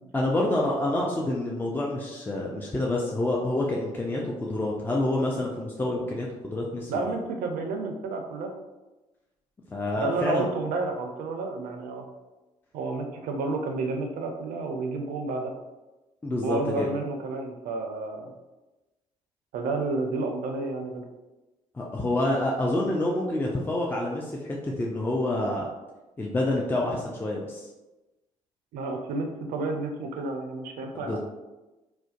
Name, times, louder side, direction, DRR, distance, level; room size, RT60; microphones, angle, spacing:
voice 1, 0.1-7.1 9.7-10.5 16.2-16.9 21.7-25.7 26.2-27.7 30.9-31.2, left 1 dB, 10° left, -2 dB, 0.4 m, -28 dB
voice 2, 6.9-8.5 10.0-12.1 12.7-15.5 16.4-18.3 19.5-21.0 28.7-31.2, right 3 dB, 60° right, 3 dB, 0.4 m, -30 dB
2.4 x 2.1 x 2.4 m, 1.1 s
figure-of-eight pair, 45°, 17 cm